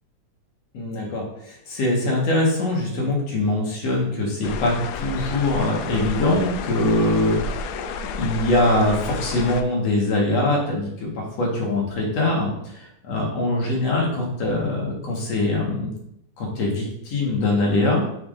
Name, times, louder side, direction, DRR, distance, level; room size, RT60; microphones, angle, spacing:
voice 1, 0.7-7.7 8.1-15.9 16.4-18.0, left 2 dB, 55° left, -2 dB, 2.3 m, -23 dB
sound 1, 4.4-9.6, left 4 dB, 80° left, 2.0 m, -31 dB
7.1 x 5.8 x 2.5 m, 0.75 s
omnidirectional pair, 4.0 m